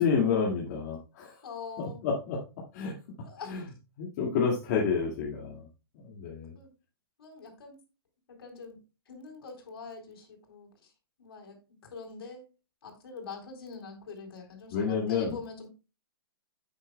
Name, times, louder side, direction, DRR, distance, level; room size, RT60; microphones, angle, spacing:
voice 1, 0.0-1.4 1.8-2.4 2.7-2.9 3.5-3.6 4.0-5.7 6.0-6.6 14.7-15.4, left 6 dB, 40° left, -2 dB, 2.1 m, -29 dB
voice 2, 1.4-2.0 3.2-3.5 6.5-6.7 7.2-7.8 8.3-8.8 9.1-10.9 11.2-12.4 12.8-15.7, left 5 dB, 75° left, 3 dB, 3.8 m, -44 dB
9.4 x 8.7 x 2.3 m, 0.31 s
hypercardioid pair, 150°, 13 cm